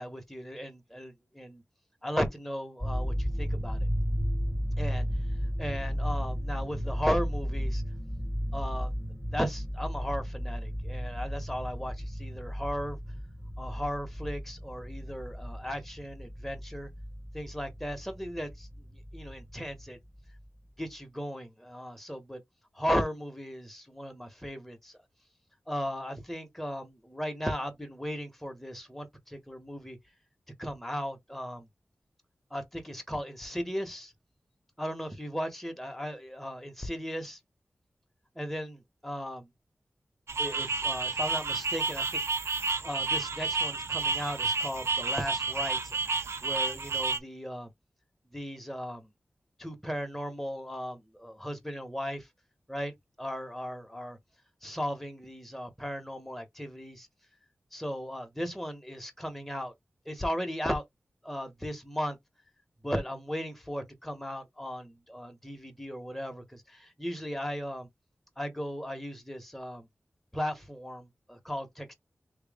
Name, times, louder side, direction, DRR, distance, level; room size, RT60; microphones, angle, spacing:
voice 1, 0.0-1.6 2.0-3.9 4.8-5.0 5.6-7.8 8.5-8.9 9.3-13.0 13.6-16.9 17.3-20.0 20.8-22.4 22.7-25.0 25.7-30.0 30.6-31.7 32.5-34.1 34.8-37.4 38.3-39.5 40.4-42.5 42.8-47.7 48.3-49.1 49.6-52.3 52.7-52.9 53.2-54.2 54.6-57.1 57.7-59.7 60.0-60.8 61.2-62.2 62.8-67.9 68.4-69.9 70.3-71.9, equal, 5° left, 1.4 m, -36 dB
sound 1, 2.8-19.9 20.2-20.5, equal, 15° right, 1.8 m, -34 dB
sound 2, 40.3-47.2, right 4 dB, 75° right, 0.5 m, -30 dB
3.1 x 3.0 x 3.7 m
cardioid pair, 50°, 5 cm